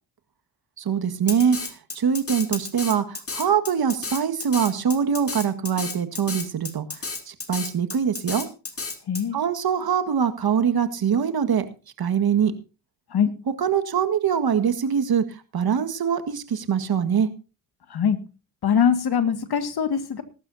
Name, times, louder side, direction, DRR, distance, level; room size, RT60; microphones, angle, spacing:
voice 1, 0.8-8.5 9.3-11.7 12.0-12.5 13.6-17.3, right 7 dB, 50° right, 9 dB, 1.8 m, -23 dB
Drum kit, 1.3-9.2, left 4 dB, 30° left, 2.9 m, -32 dB
voice 2, 9.1-9.4 13.1-13.3 17.9-18.2 18.6-20.2, left 7 dB, 55° left, 9 dB, 2.0 m, -22 dB
20.0 x 11.5 x 2.8 m, 0.32 s
hypercardioid pair, 50°, 45 cm